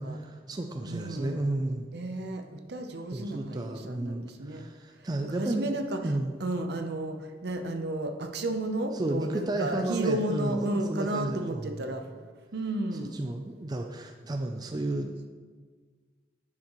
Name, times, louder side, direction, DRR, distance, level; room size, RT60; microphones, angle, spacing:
voice 1, 0.0-1.9 3.1-5.7 6.0-6.4 8.9-11.8 13.1-15.3, right 1 dB, 20° right, 4 dB, 0.4 m, -32 dB
voice 2, 0.9-1.4 1.9-4.6 5.0-6.0 6.4-12.0 12.5-13.2, right 1 dB, 60° right, 6 dB, 0.7 m, -33 dB
9.7 x 6.5 x 3.1 m, 1.5 s
head